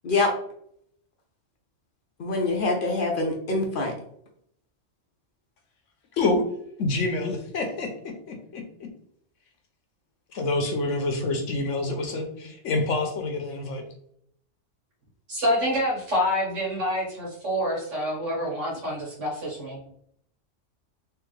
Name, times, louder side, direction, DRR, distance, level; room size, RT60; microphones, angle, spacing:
voice 1, 2.2-3.9, left 2 dB, 55° left, 1 dB, 0.7 m, -25 dB
voice 2, 6.8-7.9 8.3-8.6 10.3-13.8, left 2 dB, 75° left, 4 dB, 1.1 m, -27 dB
voice 3, 15.3-19.8, equal, 75° right, -4 dB, 1.8 m, -27 dB
3.5 x 3.0 x 3.2 m, 0.68 s
omnidirectional pair, 1.3 m